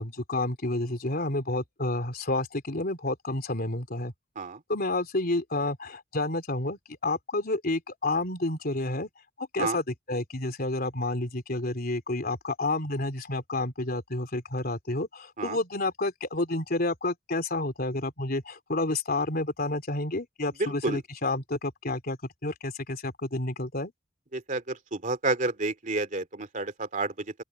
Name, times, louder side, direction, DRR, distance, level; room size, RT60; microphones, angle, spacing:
voice 1, 0.0-4.1 4.7-9.1 9.4-22.2 22.4-23.9, left 2 dB, 55° left, 3.6 m, -30 dB
voice 2, 20.6-21.0 24.3-27.3, right 3 dB, 45° right, 2.6 m, -30 dB
open air
head